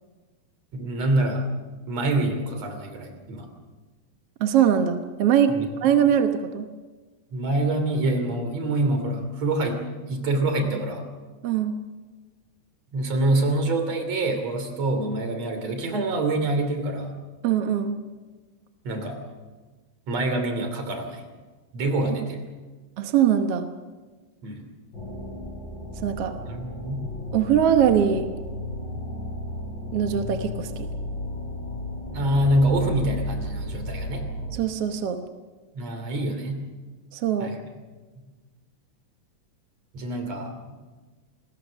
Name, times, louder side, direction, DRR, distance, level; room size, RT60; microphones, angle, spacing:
voice 1, 0.7-1.4 1.9-3.5 5.5-5.7 7.3-9.8 10.1-11.0 12.9-17.1 18.8-19.2 20.1-21.2 21.7-22.4 24.4-24.7 26.4-27.1 32.1-34.2 35.7-36.6 37.4-37.6 39.9-40.8, right 1 dB, 50° right, 6 dB, 4.0 m, -26 dB
voice 2, 4.4-5.5 5.8-6.7 11.4-11.7 17.4-18.0 23.0-23.7 26.0-26.3 27.3-28.3 29.9-30.9 34.5-35.2 37.1-37.6, right 9 dB, 65° right, 6 dB, 1.6 m, -22 dB
sound 1, 24.9-34.5, left 1 dB, 30° left, 8.8 m, -34 dB
29.0 x 20.5 x 6.3 m, 1.3 s
omnidirectional pair, 4.1 m